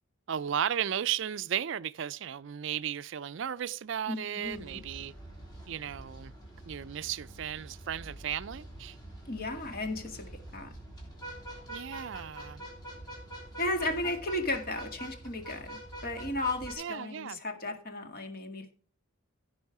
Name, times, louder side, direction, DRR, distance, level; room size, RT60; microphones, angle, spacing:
voice 1, 0.3-5.1 5.7-6.3 6.7-9.0 11.7-12.6 16.8-17.4, right 9 dB, 55° right, 0.4 m, -35 dB
voice 2, 4.1-4.8 9.3-10.3 10.5-10.7 13.6-18.7, left 2 dB, 45° left, 1.9 m, -34 dB
sound 1, 4.4-16.7, right 1 dB, 20° left, 3.3 m, -46 dB
16.0 x 5.5 x 4.7 m
head